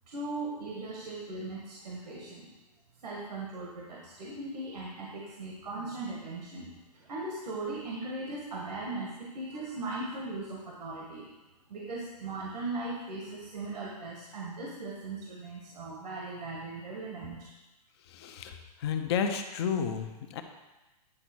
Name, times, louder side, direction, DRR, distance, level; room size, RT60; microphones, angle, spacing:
voice 1, 0.1-2.5 3.0-11.3 11.7-17.5, right 2 dB, 85° right, -2 dB, 1.8 m, -38 dB
voice 2, 18.2-18.5 18.8-20.4, left 7 dB, 40° left, 6 dB, 0.8 m, -31 dB
9.9 x 4.1 x 6.2 m, 1.1 s
hypercardioid pair, 160°, 21 cm